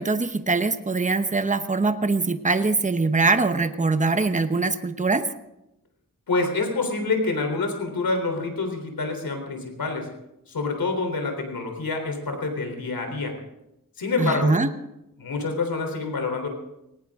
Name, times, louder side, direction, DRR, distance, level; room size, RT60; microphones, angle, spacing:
voice 1, 0.0-5.2 14.2-14.7, right 3 dB, 20° right, 9 dB, 0.9 m, -22 dB
voice 2, 6.3-10.1 10.5-13.4 14.0-14.5 15.2-16.5, left 3 dB, 85° left, 5 dB, 3.7 m, -27 dB
18.5 x 18.5 x 3.7 m, 0.87 s
wide cardioid pair, 115°, 34 cm